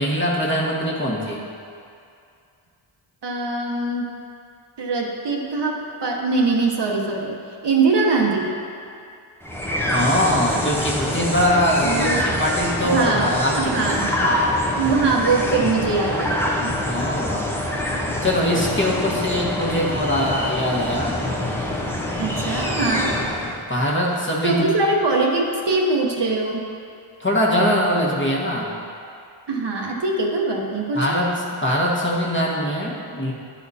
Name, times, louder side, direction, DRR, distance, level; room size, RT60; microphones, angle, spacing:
voice 1, 0.0-1.4 9.8-14.5 16.8-17.5 18.2-21.3 23.7-24.7 27.2-28.7 30.9-31.3 31.6-33.3, equal, 25° left, -4 dB, 1.4 m, -22 dB
voice 2, 3.2-4.1 4.8-8.6 11.8-12.4 12.8-14.1 14.8-16.8 22.2-23.2 24.4-26.7 29.5-31.2, right 3 dB, 55° right, -1 dB, 1.0 m, -22 dB
sound 1, 9.4-23.6, left 1 dB, 5° left, 0.9 m, -25 dB
11.0 x 4.3 x 4.2 m, 2.4 s
wide cardioid pair, 70°, 50 cm